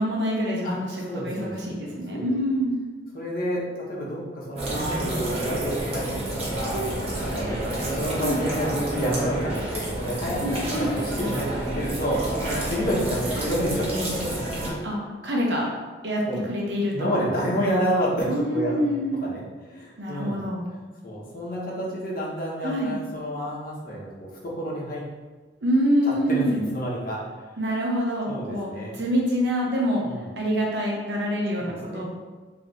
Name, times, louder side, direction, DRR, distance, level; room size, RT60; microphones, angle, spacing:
voice 1, 0.0-2.7 8.2-8.4 10.4-10.9 14.8-15.0 15.2-15.7 16.0-16.2 16.5-17.2 18.3-19.2 20.0-20.6 22.6-23.0 25.6-26.7 27.6-30.0 30.4-32.0, equal, 70° right, -2 dB, 0.9 m, -26 dB
voice 2, 1.1-1.8 2.1-2.3 3.1-7.6 7.9-14.3 16.2-16.4 16.9-18.8 19.2-20.4 21.0-25.0 26.0-27.3 28.3-29.0 30.0-30.3 31.6-32.0, equal, 55° left, -4 dB, 1.0 m, -29 dB
sound 1, 4.6-14.7, right 1 dB, 35° right, 1.0 m, -29 dB
3.2 x 3.0 x 3.9 m, 1.3 s
head